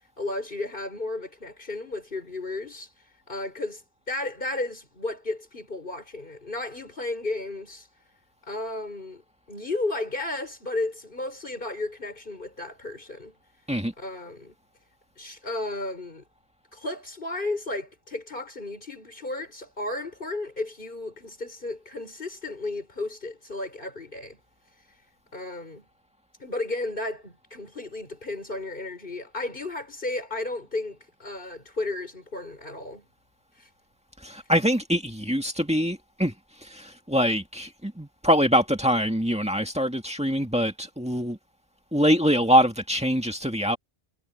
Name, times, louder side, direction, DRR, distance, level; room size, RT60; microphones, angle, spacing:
voice 1, 0.2-2.9 3.3-3.8 4.1-7.9 8.4-9.2 9.5-13.4 14.0-14.5 15.2-16.2 16.7-24.4 25.3-25.9 26.4-33.1 33.6-33.7, left 2 dB, 55° left, 5.5 m, -33 dB
voice 2, 34.2-36.3 36.6-41.4 41.9-43.8, equal, 5° right, 1.9 m, -24 dB
omnidirectional pair, 1.0 m